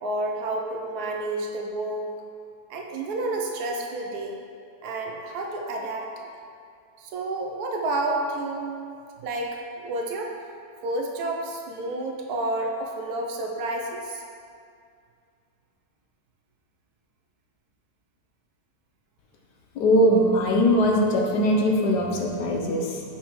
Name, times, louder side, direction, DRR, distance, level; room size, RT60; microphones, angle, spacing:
voice 1, 0.0-2.1 2.7-4.4 4.8-6.1 7.0-8.7 9.2-9.5 9.8-10.3 10.8-14.2, right 2 dB, 70° right, 1 dB, 1.1 m, -30 dB
voice 2, 19.8-23.0, equal, 80° left, 0 dB, 1.3 m, -21 dB
5.8 x 5.8 x 3.0 m, 2.3 s
omnidirectional pair, 1.8 m